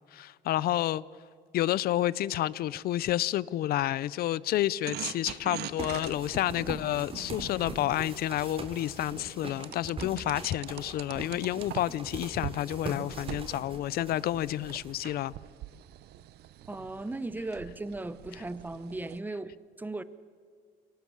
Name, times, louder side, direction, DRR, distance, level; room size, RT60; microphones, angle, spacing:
voice 1, 0.1-1.0 1.5-15.3, left 13 dB, 65° left, 0.6 m, -30 dB
sound 1, 4.9-8.8 9.6-12.1 12.4-12.6 13.1-19.2, right 14 dB, 70° right, 0.7 m, -43 dB
sound 2, 5.8-15.3, right 2 dB, 35° right, 3.7 m, -42 dB
voice 2, 16.6-19.5 19.8-20.0, right 2 dB, 10° right, 0.9 m, -37 dB
23.0 x 18.5 x 7.3 m
cardioid pair, 110°, 17 cm